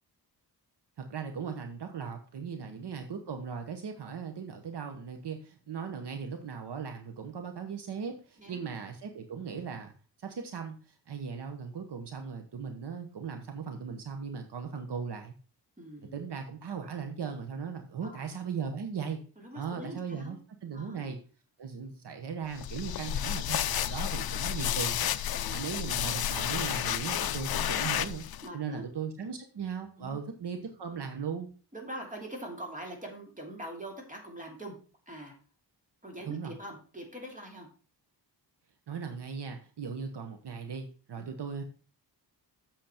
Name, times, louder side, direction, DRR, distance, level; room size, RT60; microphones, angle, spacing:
voice 1, 1.0-9.9 10.2-15.3 16.1-19.2 19.5-21.2 21.6-25.1 25.5-28.3 28.5-31.5 36.3-36.5 38.9-41.6, right 6 dB, 70° right, 5 dB, 1.1 m, -38 dB
voice 2, 2.6-2.9 8.4-8.6 15.8-16.2 18.0-18.4 19.4-20.4 20.7-21.1 25.3-25.8 28.4-28.9 30.0-30.2 31.7-34.8 35.1-35.3 36.0-37.7 41.2-41.3, right 1 dB, 20° right, 1 dB, 2.6 m, -43 dB
sound 1, 22.6-28.5, left 11 dB, 60° left, 0.5 m, -31 dB
7.8 x 7.1 x 4.4 m, 0.38 s
wide cardioid pair, 140°, 42 cm